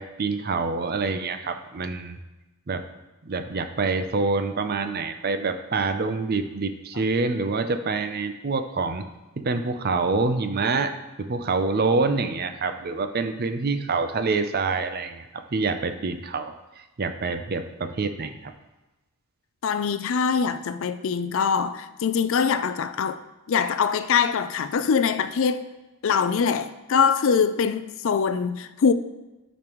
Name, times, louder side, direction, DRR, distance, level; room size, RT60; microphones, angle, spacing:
voice 1, 0.0-2.2 2.7-2.8 3.3-9.0 9.4-10.9 11.2-15.2 15.5-18.5, right 3 dB, 45° right, 0.5 m, -26 dB
voice 2, 19.6-23.2 23.5-25.7 26.0-28.9, left 6 dB, 60° left, 0.4 m, -23 dB
12.0 x 5.2 x 3.0 m
head